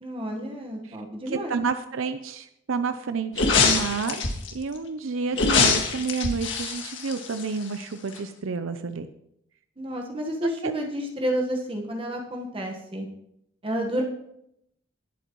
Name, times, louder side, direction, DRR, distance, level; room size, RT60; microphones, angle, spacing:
voice 1, 0.0-1.6 9.8-13.1 13.6-14.0, equal, 25° right, 1 dB, 1.2 m, -30 dB
voice 2, 1.3-4.2 4.5-9.1 10.6-10.7, right 5 dB, 80° right, 10 dB, 0.6 m, -30 dB
sound 1, 3.3-4.5 5.3-7.8 8.1-8.2, left 4 dB, 65° left, 1.8 m, -23 dB
20.0 x 8.1 x 3.1 m, 0.79 s
head